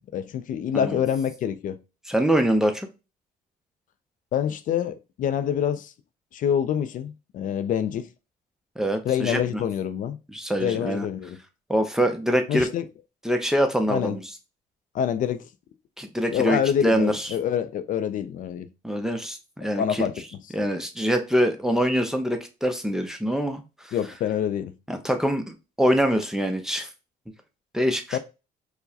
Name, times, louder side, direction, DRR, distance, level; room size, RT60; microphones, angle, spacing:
voice 1, 0.0-1.8 4.3-5.9 6.3-8.1 9.0-10.2 10.6-11.4 12.5-12.9 13.9-14.2 14.9-15.5 16.3-18.7 19.8-20.1 23.9-24.7 28.1-28.2, left 9 dB, 50° left, 0.4 m, -26 dB
voice 2, 2.1-2.9 8.8-9.4 10.3-11.1 11.7-12.7 13.2-14.2 16.0-17.3 18.8-20.0 20.5-23.9 24.9-26.9 27.7-28.2, equal, 5° right, 0.5 m, -24 dB
4.5 x 2.1 x 2.7 m
cardioid pair, 110°, 17 cm